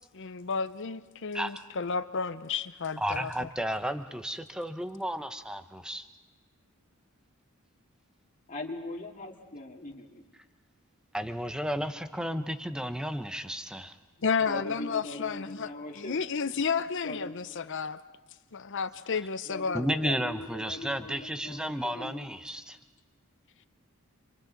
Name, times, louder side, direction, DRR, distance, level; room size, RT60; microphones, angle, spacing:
voice 1, 0.1-3.5 14.2-18.0 18.5-20.0, left 5 dB, 60° left, 0.7 m, -32 dB
voice 2, 3.0-6.1 11.1-14.0 19.7-22.8, equal, 5° right, 0.8 m, -33 dB
voice 3, 8.5-10.2 14.5-16.2 17.0-17.4 19.5-22.3, left 2 dB, 35° left, 2.2 m, -41 dB
30.0 x 25.5 x 4.0 m
head